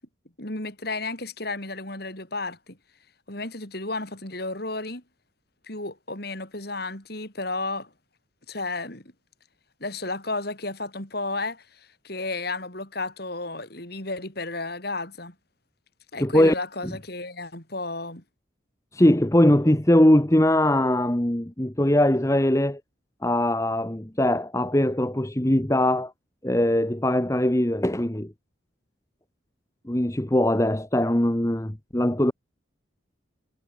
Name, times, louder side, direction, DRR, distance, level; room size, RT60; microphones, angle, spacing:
voice 1, 0.4-2.8 3.3-5.0 5.7-7.9 8.5-9.1 9.8-15.3 16.1-18.2, left 2 dB, 50° left, 4.7 m, -33 dB
voice 2, 16.2-16.5 16.8-16.9 18.9-22.8 23.2-26.1 26.4-28.3 29.9-32.3, left 1 dB, 15° left, 1.1 m, -21 dB
head